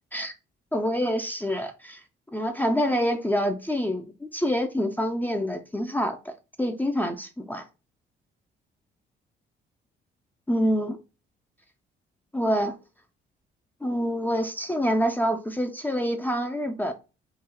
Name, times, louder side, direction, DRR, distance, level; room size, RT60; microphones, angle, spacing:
voice 1, 0.7-2.0 2.3-6.3 6.6-7.6 10.5-11.0 12.3-12.8 13.8-16.9, equal, 10° left, 0.5 m, -26 dB
3.8 x 2.4 x 2.8 m
cardioid pair, 90°, 20 cm